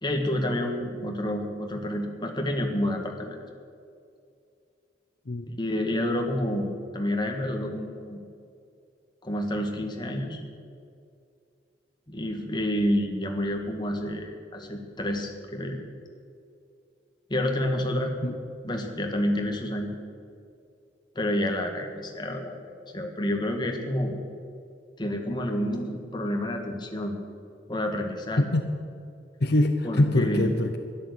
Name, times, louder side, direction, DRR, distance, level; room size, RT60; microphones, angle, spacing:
voice 1, 0.0-3.4 5.5-8.2 9.2-10.4 12.1-15.8 17.3-18.1 18.6-19.9 21.1-24.1 25.0-27.2 27.7-28.4 29.8-30.4, left 1 dB, 25° left, 3 dB, 1.6 m, -29 dB
voice 2, 28.4-28.7 29.4-30.8, left 1 dB, 55° left, 6 dB, 0.8 m, -23 dB
12.5 x 11.0 x 8.1 m, 2.4 s
head